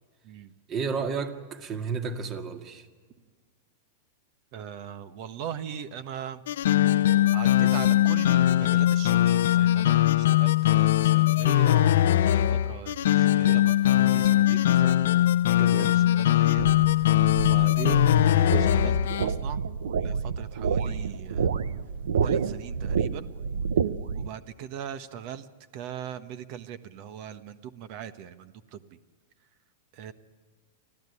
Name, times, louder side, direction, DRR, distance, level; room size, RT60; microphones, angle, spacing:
voice 1, 0.7-2.9 15.6-16.0, right 5 dB, 35° right, 2.2 m, -32 dB
voice 2, 4.5-6.4 6.7-6.9 7.3-15.3 15.6-16.7 17.3-19.6 20.0-21.6 22.2-23.3 24.1-25.5 25.7-28.8 29.9-30.1, right 9 dB, 50° right, 1.3 m, -40 dB
sound 1, 6.5-19.3, left 13 dB, 75° left, 0.7 m, -21 dB
sound 2, 16.6-24.3, right 6 dB, 80° right, 0.9 m, -29 dB
24.5 x 15.0 x 9.9 m
hypercardioid pair, 115°, 0 cm